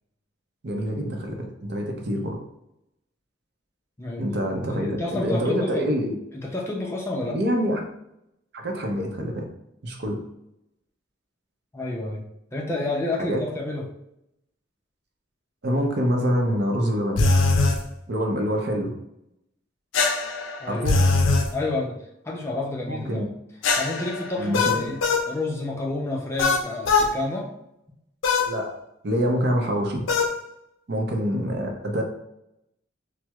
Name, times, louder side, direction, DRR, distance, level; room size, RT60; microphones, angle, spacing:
voice 1, 0.6-2.4 4.2-4.9 5.2-6.2 7.3-7.8 8.5-9.5 9.8-10.2 13.2-13.4 15.6-17.3 18.1-18.9 20.7-20.9 22.9-23.2 24.4-24.9 28.5-28.7 29.0-30.0 30.9-32.0, equal, 60° right, 2 dB, 0.6 m, -25 dB
voice 2, 4.7-5.9 6.3-7.4 11.7-12.2 12.5-13.8 20.6-20.9 21.5-22.0 22.2-23.2 23.8-25.0 25.3-27.5, left 2 dB, 15° left, -2 dB, 0.5 m, -29 dB
sound 1, 17.2-17.8 19.9-21.5 23.6-25.3 26.4-27.1 28.2-28.5 30.1-30.4, left 3 dB, 80° left, 0.4 m, -21 dB
4.4 x 2.0 x 2.3 m, 0.81 s
head